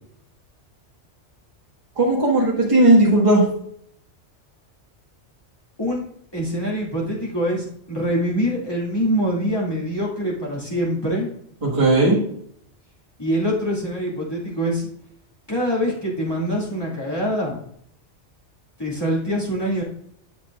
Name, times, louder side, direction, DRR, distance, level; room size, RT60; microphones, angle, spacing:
voice 1, 2.0-3.4 11.6-12.2, right 2 dB, 30° right, -5 dB, 1.8 m, -16 dB
voice 2, 6.3-11.3 13.2-14.9 15.5-17.6 18.8-19.8, equal, 20° left, -5 dB, 2.5 m, -24 dB
9.0 x 7.2 x 2.5 m, 0.67 s
omnidirectional pair, 1.2 m